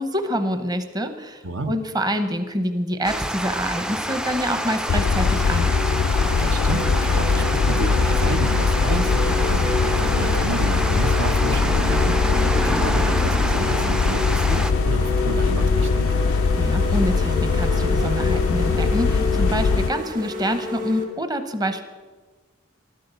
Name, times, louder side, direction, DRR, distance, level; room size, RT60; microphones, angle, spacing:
voice 1, 0.0-5.7 16.3-21.8, equal, 20° right, 8 dB, 0.8 m, -26 dB
Water, 3.0-14.7, equal, 5° right, 0.3 m, -27 dB
sound 1, 4.3-4.4 4.9-21.0, left 1 dB, 45° right, 2.1 m, -30 dB
sound 2, 4.9-19.9, left 5 dB, 85° left, 0.4 m, -21 dB
voice 2, 6.4-12.4 12.6-16.1, right 2 dB, 70° right, 8 dB, 0.9 m, -31 dB
12.5 x 12.0 x 6.9 m, 1.3 s
head